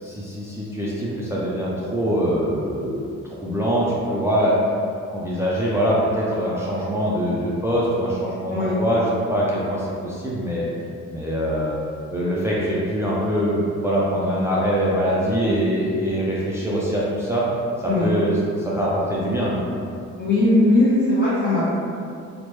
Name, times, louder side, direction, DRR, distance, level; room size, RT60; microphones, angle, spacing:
voice 1, 0.0-4.6 5.1-10.7 11.1-11.8 12.1-17.5 17.8-19.6, equal, 10° right, -6 dB, 0.4 m, -23 dB
voice 2, 20.2-21.6, left 2 dB, 30° left, -10 dB, 0.8 m, -18 dB
3.1 x 2.1 x 3.0 m, 2.4 s
cardioid pair, 90°, 30 cm